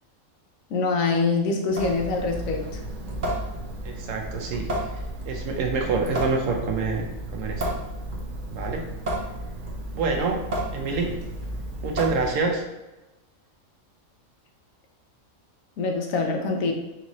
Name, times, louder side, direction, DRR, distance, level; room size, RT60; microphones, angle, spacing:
voice 1, 0.7-2.6 15.8-16.7, left 3 dB, 85° left, 2 dB, 1.1 m, -24 dB
Water tap faucet / Sink (filling or washing) / Drip, 1.7-12.6, right 1 dB, 50° right, 0.7 m, -32 dB
voice 2, 3.8-4.7 5.2-7.8 8.5-8.8 9.9-10.4 10.7-11.1 11.8-12.6, right 4 dB, 75° right, 2 dB, 1.1 m, -27 dB
4.6 x 2.6 x 3.1 m, 0.99 s
omnidirectional pair, 1.4 m